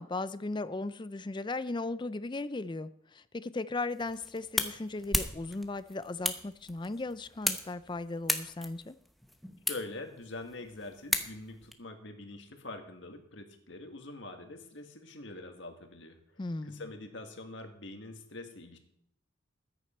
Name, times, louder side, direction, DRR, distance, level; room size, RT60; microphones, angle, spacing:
voice 1, 0.0-9.0 16.4-16.9, left 2 dB, 25° left, 15 dB, 0.4 m, -37 dB
sound 1, 3.9-11.7, equal, ahead, 0.8 m, -36 dB
voice 2, 9.7-16.2 16.6-18.8, left 2 dB, 65° left, 5 dB, 1.8 m, -44 dB
14.5 x 9.7 x 4.4 m, 0.71 s
head